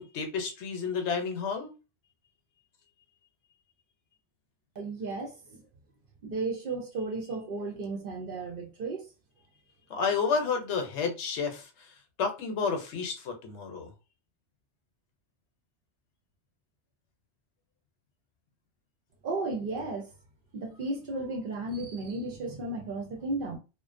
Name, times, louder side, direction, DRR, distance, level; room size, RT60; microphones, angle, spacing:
voice 1, 0.0-1.7 9.9-13.9, left 5 dB, 75° left, 0.9 m, -31 dB
voice 2, 4.8-5.6 6.2-9.1 19.2-20.1 20.5-23.6, right 2 dB, 60° right, 0.6 m, -34 dB
2.4 x 2.1 x 2.4 m
omnidirectional pair, 1.2 m